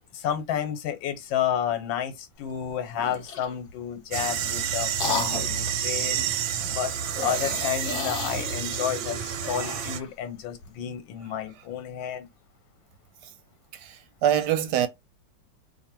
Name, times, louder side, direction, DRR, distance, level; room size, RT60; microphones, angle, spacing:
voice 1, 0.1-6.3 6.6-6.9 7.2-12.3, left 9 dB, 80° left, 1.5 m, -31 dB
sound 1, 2.9-3.6 4.2-5.7 7.0-10.1, left 4 dB, 55° left, 0.8 m, -34 dB
sound 2, 4.1-10.0, right 9 dB, 90° right, 1.3 m, -29 dB
voice 2, 13.8-14.9, right 10 dB, 70° right, 1.1 m, -24 dB
2.8 x 2.7 x 4.3 m
omnidirectional pair, 2.1 m